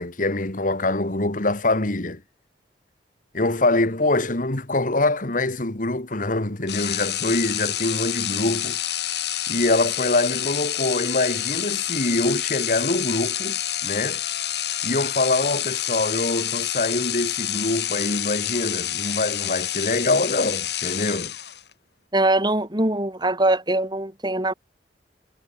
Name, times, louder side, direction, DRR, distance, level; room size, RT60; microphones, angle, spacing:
voice 1, 0.0-2.2 3.3-8.8 9.5-14.2 14.8-21.3, left 2 dB, 50° left, 2.2 m, -24 dB
sound 1, 6.7-21.7, left 12 dB, 65° left, 7.3 m, -28 dB
voice 2, 22.1-24.5, right 1 dB, 25° right, 6.4 m, -22 dB
head